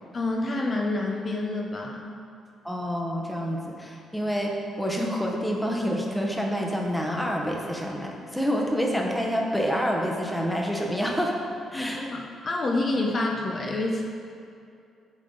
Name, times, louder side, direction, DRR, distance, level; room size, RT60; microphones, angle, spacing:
voice 1, 0.1-2.1 11.7-14.0, left 2 dB, 40° left, 0 dB, 0.6 m, -28 dB
voice 2, 2.6-11.4 11.7-12.1, equal, ahead, 0 dB, 0.9 m, -27 dB
8.2 x 3.7 x 3.8 m, 2.5 s
cardioid pair, 90°, 0 cm